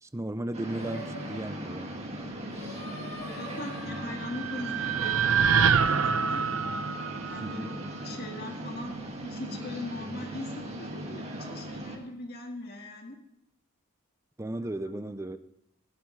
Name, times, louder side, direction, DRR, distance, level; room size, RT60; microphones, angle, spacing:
voice 1, 0.0-2.0 7.4-7.7 14.4-15.4, right 1 dB, 15° right, 12 dB, 0.4 m, -35 dB
sound 1, 0.5-12.0, right 1 dB, 30° right, 2.0 m, -38 dB
Singing, 0.7-6.0, left 1 dB, 85° left, 3.1 m, -46 dB
voice 2, 3.2-6.5 7.2-9.0 9.2-13.2 14.6-14.9, left 1 dB, 50° left, 2 dB, 1.7 m, -41 dB
sound 2, 3.8-8.1, right 6 dB, 75° right, 0.7 m, -27 dB
16.5 x 12.0 x 3.2 m, 0.80 s
head